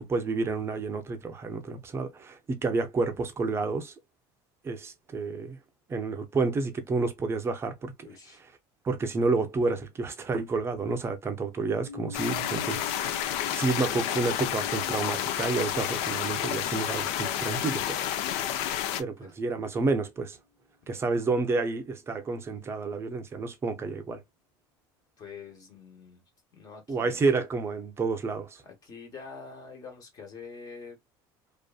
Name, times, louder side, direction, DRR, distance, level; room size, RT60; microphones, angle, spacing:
voice 1, 0.0-3.9 4.6-5.6 5.9-8.1 8.8-18.1 19.0-20.4 20.9-24.2 26.9-28.6, right 3 dB, 25° right, 0.6 m, -30 dB
voice 2, 8.0-8.4 13.6-13.7 19.2-19.3 20.8-21.0 25.2-26.2 26.5-27.2 28.6-31.0, left 5 dB, 35° left, 1.2 m, -46 dB
sound 1, 11.8-19.7, left 5 dB, ahead, 1.1 m, -48 dB
sound 2, 12.1-19.0, left 11 dB, 70° left, 0.5 m, -30 dB
2.5 x 2.4 x 2.3 m
supercardioid pair, 125°, 11 cm